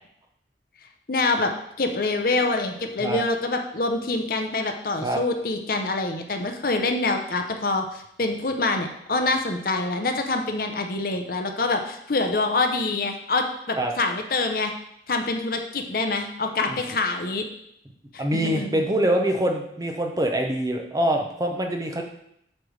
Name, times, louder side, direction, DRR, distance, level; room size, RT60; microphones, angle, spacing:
voice 1, 1.1-1.5 1.8-14.7 15.1-17.4 18.1-18.7, left 3 dB, 55° left, 5 dB, 0.8 m, -25 dB
voice 2, 18.2-22.0, right 1 dB, 20° right, 3 dB, 0.7 m, -24 dB
8.4 x 3.3 x 6.3 m, 0.74 s
head